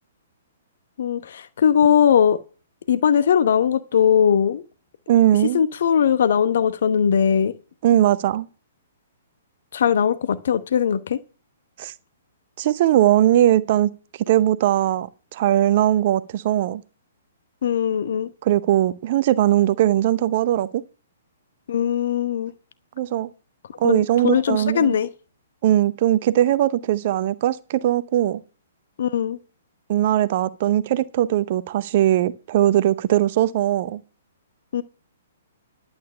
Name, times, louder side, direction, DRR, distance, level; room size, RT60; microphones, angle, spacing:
voice 1, 1.0-2.4 2.9-4.6 5.5-7.5 9.7-11.2 17.6-18.3 21.7-22.5 23.8-25.1 29.0-29.4 34.7-34.8, left 8 dB, 55° left, 0.9 m, -20 dB
voice 2, 5.1-5.6 7.8-8.5 11.8-11.9 12.6-13.9 14.3-16.8 18.4-20.8 23.0-23.3 23.8-25.0 25.6-28.4 29.9-34.0, right 12 dB, 40° right, 0.8 m, -20 dB
11.5 x 8.8 x 5.5 m
figure-of-eight pair, 120°, 0 cm